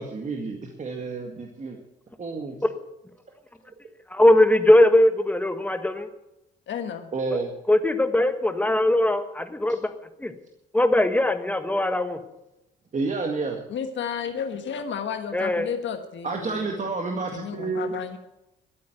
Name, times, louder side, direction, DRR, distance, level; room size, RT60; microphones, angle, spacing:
voice 1, 0.0-1.8 2.2-2.6 7.1-7.5 12.9-13.6 16.2-17.9, right 3 dB, 40° right, 2 dB, 2.0 m, -30 dB
voice 2, 4.1-6.1 7.7-9.8 10.2-10.3 10.7-12.2 15.3-15.7, left 1 dB, 10° left, 8 dB, 1.5 m, -20 dB
voice 3, 6.7-7.1 13.7-16.9 17.3-18.2, left 7 dB, 70° left, 6 dB, 1.6 m, -32 dB
13.0 x 8.5 x 9.3 m, 0.90 s
cardioid pair, 90°, 20 cm